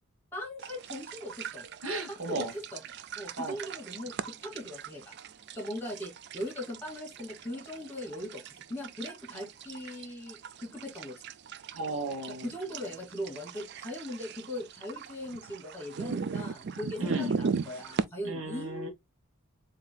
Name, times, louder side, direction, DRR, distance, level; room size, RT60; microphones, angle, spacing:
voice 1, 0.3-1.6 2.1-2.8 3.2-5.1 5.6-8.4 8.7-11.1 12.4-18.9, left 1 dB, 10° left, 2.3 m, -39 dB
sound 1, 0.6-18.0, right 5 dB, 50° right, 0.4 m, -39 dB
voice 2, 1.8-2.5 3.4-3.5 11.7-12.5 17.0-17.3 18.2-18.9, right 1 dB, 65° right, 1.1 m, -34 dB
7.3 x 2.8 x 2.3 m
head